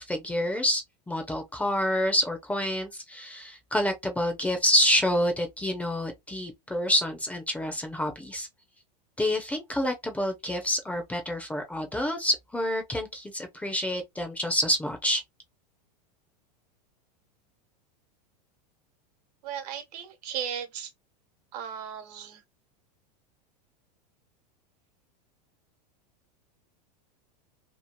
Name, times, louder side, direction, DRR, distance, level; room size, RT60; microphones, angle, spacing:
voice 1, 0.0-8.5 9.2-15.2, equal, 5° left, 0.6 m, -28 dB
voice 2, 19.4-20.9 21.5-22.4, right 8 dB, 70° right, 1.1 m, -36 dB
2.9 x 2.3 x 2.2 m
supercardioid pair, 130°, 21 cm